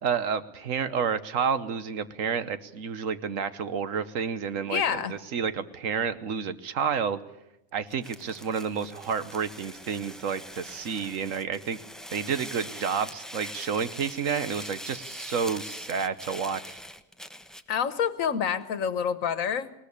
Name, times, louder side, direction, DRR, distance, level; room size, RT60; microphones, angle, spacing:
voice 1, 0.0-7.2 7.7-11.8 12.1-16.8, right 6 dB, 80° right, 13 dB, 1.4 m, -30 dB
voice 2, 4.7-5.1 17.7-19.7, left 7 dB, 85° left, 14 dB, 1.5 m, -27 dB
sound 1, 7.9-17.7, equal, ahead, 0.8 m, -42 dB
20.0 x 19.0 x 8.5 m, 0.86 s
omnidirectional pair, 1.3 m